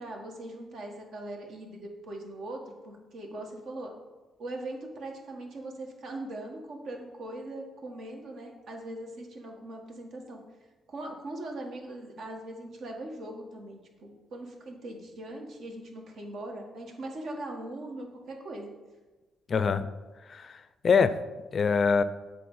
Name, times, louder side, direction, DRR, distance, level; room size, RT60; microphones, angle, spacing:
voice 1, 0.0-3.9 4.4-10.4 10.9-18.7, right 1 dB, 65° right, 1 dB, 1.5 m, -40 dB
voice 2, 19.5-19.9 20.3-21.2 21.5-22.0, left 5 dB, 45° left, 13 dB, 0.4 m, -24 dB
7.7 x 3.8 x 5.5 m, 1.3 s
cardioid pair, 90°, 0 cm